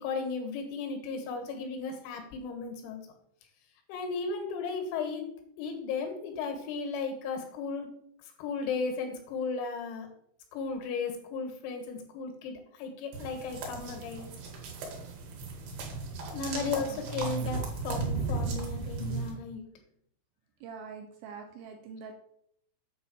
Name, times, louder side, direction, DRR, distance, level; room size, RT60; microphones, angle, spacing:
voice 1, 0.0-3.0 3.9-5.3 5.6-7.9 8.4-10.1 10.5-14.3 16.3-19.7, left 4 dB, 85° left, 5 dB, 4.2 m, -35 dB
sound 1, 13.1-19.3, right 4 dB, 60° right, 3.2 m, -35 dB
voice 2, 16.6-17.0 20.6-22.1, right 5 dB, 85° right, 4 dB, 2.7 m, -44 dB
8.9 x 4.2 x 7.0 m, 0.70 s
omnidirectional pair, 6.0 m